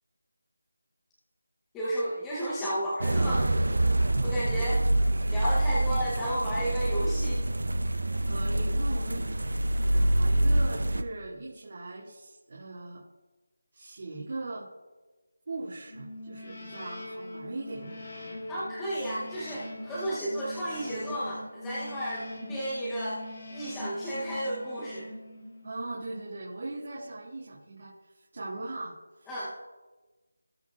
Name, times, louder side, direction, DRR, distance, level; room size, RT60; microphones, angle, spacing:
voice 1, 1.7-3.5 4.2-4.8 5.3-7.4 18.5-25.1 29.3-29.5, equal, 5° left, -9 dB, 0.8 m, -33 dB
sound 1, 3.0-11.0, right 1 dB, 65° right, 0.7 m, -26 dB
voice 2, 8.3-9.3 9.8-13.0 13.7-14.7 15.5-18.0 22.4-22.5 25.6-29.3, right 2 dB, 35° right, -6 dB, 2.0 m, -39 dB
sound 2, 15.9-25.8, left 1 dB, 30° left, 2.1 m, -42 dB
18.5 x 6.5 x 2.4 m, 1.2 s
figure-of-eight pair, 180°, 0 cm